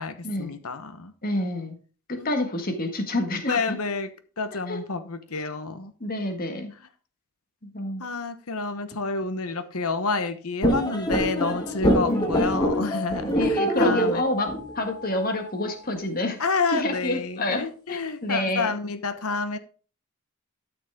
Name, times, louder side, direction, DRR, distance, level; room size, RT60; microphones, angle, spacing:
voice 1, 0.0-1.1 2.2-2.4 3.5-5.9 8.0-14.2 16.4-19.6, left 4 dB, 75° left, 1.0 m, -29 dB
voice 2, 1.2-1.7 2.1-3.8 4.7-4.8 6.0-6.7 7.6-8.1 12.1-12.3 13.3-16.4 16.7-18.7, left 1 dB, 40° left, 1.7 m, -28 dB
sound 1, 10.6-15.7, equal, 20° left, 1.7 m, -25 dB
13.0 x 6.3 x 3.5 m
head